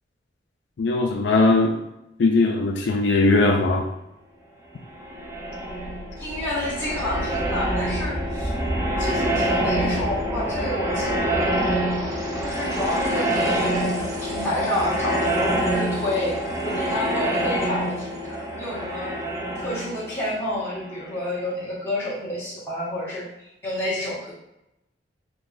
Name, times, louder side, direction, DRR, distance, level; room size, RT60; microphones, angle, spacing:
voice 1, 0.8-1.8 2.2-3.9, left 3 dB, 75° left, 2 dB, 0.4 m, -19 dB
sound 1, 4.9-21.5, right 1 dB, 15° right, 0.5 m, -26 dB
voice 2, 6.2-8.5 9.0-11.6 12.4-19.1 19.5-23.3 23.6-24.3, left 1 dB, 15° left, -10 dB, 1.5 m, -29 dB
3.8 x 2.9 x 2.5 m, 0.87 s
head